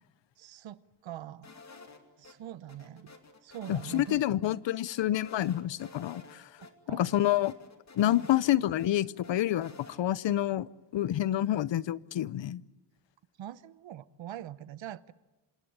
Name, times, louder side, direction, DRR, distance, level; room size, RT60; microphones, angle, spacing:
voice 1, 0.4-1.5 2.2-3.1 3.4-4.2 6.6-7.0 13.4-15.1, right 11 dB, 85° right, 17 dB, 0.9 m, -43 dB
sound 1, 1.4-2.3 2.7-4.2 4.4-4.5 4.9-6.4 6.6-6.7 7.0-8.9 9.2-10.0, left 4 dB, 40° left, 2.5 m, -51 dB
voice 2, 3.7-6.5 6.9-7.5 8.0-9.7 10.0-12.6, left 13 dB, 80° left, 20 dB, 0.7 m, -28 dB
26.5 x 19.5 x 8.6 m, 1.1 s
wide cardioid pair, 120°, 44 cm